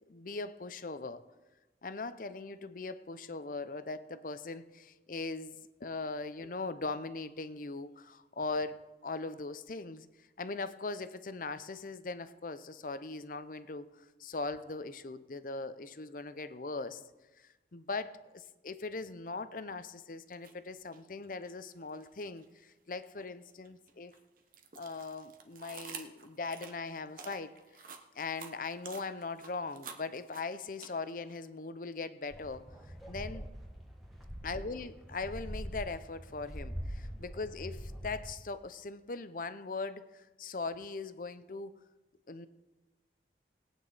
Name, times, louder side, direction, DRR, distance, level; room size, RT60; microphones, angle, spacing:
voice 1, 0.1-1.2 1.8-17.0 17.4-24.1 24.8-27.9 28.1-32.7 33.1-33.5 34.4-41.8 42.3-42.5, left 3 dB, 50° left, 13 dB, 0.7 m, -40 dB
sound 1, 20.3-20.5 20.9-22.5 22.9-31.3, right 6 dB, 50° right, 1.1 m, -49 dB
sound 2, 32.3-38.3, equal, ahead, 1.9 m, -43 dB
20.0 x 9.0 x 4.1 m, 1.1 s
head